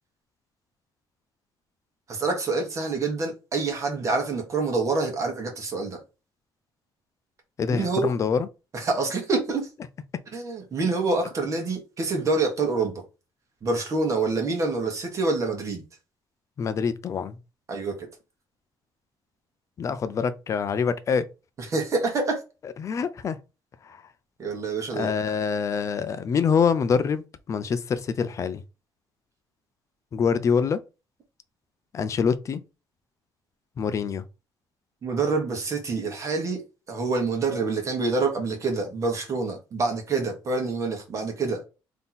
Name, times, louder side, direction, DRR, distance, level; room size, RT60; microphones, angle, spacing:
voice 1, 2.1-6.0 7.7-8.1 8.7-9.6 10.3-12.9 13.6-15.8 17.7-17.9 21.7-22.4 24.4-25.1 35.0-36.6 36.9-41.6, right 3 dB, 40° right, 1.3 m, -26 dB
voice 2, 7.6-8.5 16.6-17.4 19.8-21.3 22.8-23.4 23.8-24.0 24.9-28.6 30.1-30.8 31.9-32.6 33.8-34.2, left 6 dB, 35° left, 0.5 m, -25 dB
3.7 x 2.9 x 3.9 m
cardioid pair, 150°, 9 cm